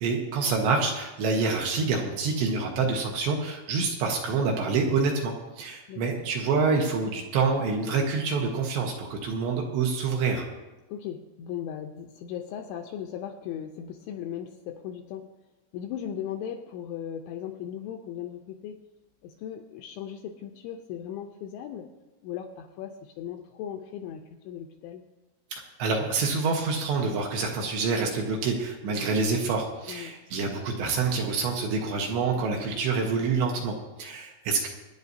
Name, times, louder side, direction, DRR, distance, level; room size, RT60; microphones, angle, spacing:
voice 1, 0.0-10.5 25.5-34.7, right 4 dB, 70° right, 0 dB, 3.0 m, -27 dB
voice 2, 5.9-6.2 10.9-15.3 15.7-18.9 19.2-21.9 22.2-25.1 29.9-30.1, left 9 dB, 80° left, 4 dB, 2.8 m, -37 dB
25.5 x 10.0 x 2.7 m, 1.1 s
omnidirectional pair, 5.9 m